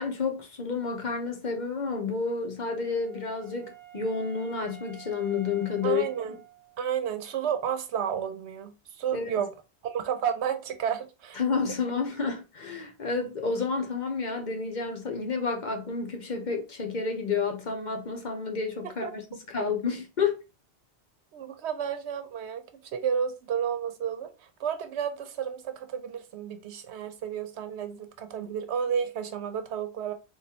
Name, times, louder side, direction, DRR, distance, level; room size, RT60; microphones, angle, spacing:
voice 1, 0.0-6.1 9.1-9.4 11.3-20.4, left 5 dB, 50° left, 0.8 m, -30 dB
Wind instrument woodwind instrument, 2.3-7.0, right 9 dB, 40° right, 1.0 m, -50 dB
voice 2, 5.8-6.4 6.8-9.5 9.8-11.4 19.0-19.1 21.3-22.6 22.9-30.1, right 8 dB, 85° right, 0.9 m, -31 dB
3.6 x 3.1 x 2.8 m
omnidirectional pair, 1.1 m